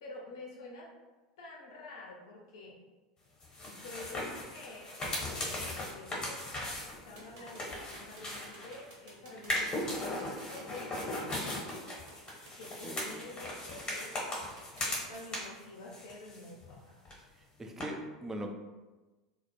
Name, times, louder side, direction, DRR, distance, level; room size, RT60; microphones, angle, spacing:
voice 1, 0.0-0.9 1.4-2.8 3.7-4.9 5.3-11.8 12.6-14.4 14.9-17.0, left 2 dB, 65° left, -3 dB, 0.5 m, -48 dB
sound 1, 3.4-8.9 9.4-15.6 15.9-16.8 17.0-17.1 17.8-17.9, left 1 dB, 30° left, 0.9 m, -38 dB
sound 2, 7.2-15.2, right 1 dB, 55° right, 0.9 m, -53 dB
voice 2, 17.6-18.5, right 1 dB, 15° right, 3 dB, 0.3 m, -40 dB
2.0 x 2.0 x 3.0 m, 1.2 s
figure-of-eight pair, 80°, 3 cm